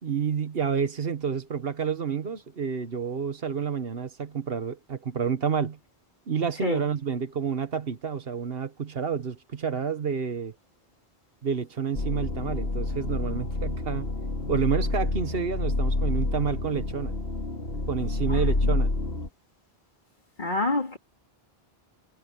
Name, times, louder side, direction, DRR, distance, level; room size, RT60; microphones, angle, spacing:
voice 1, 0.0-5.8 6.3-10.5 11.4-14.1 14.5-17.2 17.9-18.9, right 6 dB, 70° right, 1.4 m, -29 dB
sound 1, 11.9-19.3, left 2 dB, 75° left, 3.0 m, -28 dB
voice 2, 18.3-18.7 20.4-21.0, left 2 dB, 50° left, 3.2 m, -28 dB
omnidirectional pair, 1.0 m